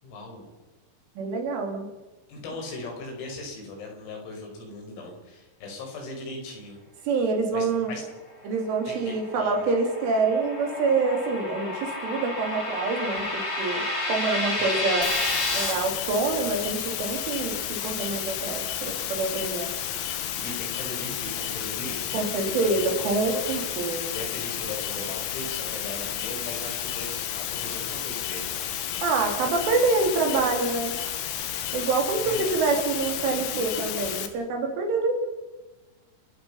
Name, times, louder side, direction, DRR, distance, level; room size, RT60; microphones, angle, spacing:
voice 1, 0.0-0.5 2.3-6.8 7.5-8.1 8.9-9.6 14.6-14.9 20.4-22.9 23.3-28.7 32.3-32.5, left 2 dB, 85° left, 1 dB, 8.1 m, -38 dB
voice 2, 1.2-1.9 7.1-7.9 8.4-15.1 15.5-19.7 22.1-24.1 29.0-31.0 31.7-35.2, right 3 dB, 70° right, 3 dB, 5.7 m, -26 dB
sound 1, 8.9-15.7, left 2 dB, 25° left, 5.1 m, -30 dB
sound 2, 15.0-34.3, left 10 dB, 70° left, 3.9 m, -32 dB
30.0 x 15.5 x 5.7 m, 1.2 s
omnidirectional pair, 5.9 m